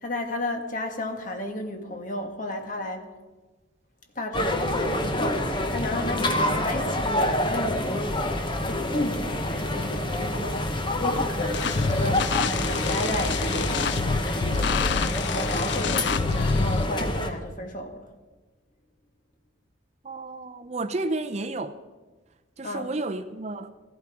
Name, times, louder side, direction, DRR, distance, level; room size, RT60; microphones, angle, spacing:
voice 1, 0.0-3.1 4.1-8.2 8.7-10.7 11.0-18.1 22.6-22.9, left 1 dB, 40° left, 1.6 m, -33 dB
sound 1, 4.3-17.3, left 1 dB, 25° left, 1.1 m, -27 dB
sound 2, 11.5-16.8, left 5 dB, 60° left, 0.5 m, -27 dB
voice 2, 20.0-21.8 22.6-23.7, right 2 dB, 35° right, 0.5 m, -31 dB
15.5 x 14.5 x 4.8 m
head